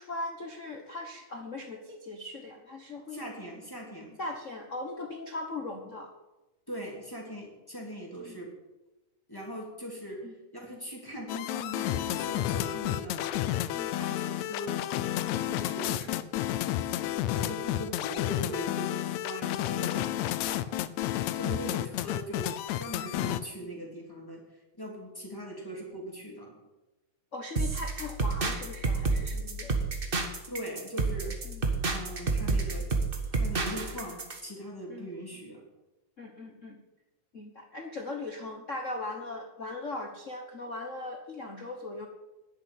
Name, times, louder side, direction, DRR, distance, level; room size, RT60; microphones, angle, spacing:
voice 1, 0.0-3.2 4.2-6.1 8.2-8.4 10.2-10.3 13.7-13.9 15.6-16.2 20.2-20.5 23.2-23.3 27.3-29.7 31.5-31.6 34.9-35.1 36.2-36.8 37.3-42.1, left 2 dB, 60° left, 3 dB, 0.8 m, -39 dB
voice 2, 3.1-4.2 6.7-8.5 9.3-13.3 14.0-14.8 15.4-16.1 17.3-20.1 20.5-20.7 21.3-24.4 24.8-26.6 30.5-31.4 31.9-32.9 33.3-35.6, equal, 5° left, -2 dB, 3.1 m, -40 dB
sound 1, 11.3-23.4, left 13 dB, 80° left, 2.0 m, -31 dB
sound 2, 27.6-34.4, right 3 dB, 35° right, 0.9 m, -30 dB
10.5 x 8.2 x 10.0 m, 1.0 s
omnidirectional pair, 3.3 m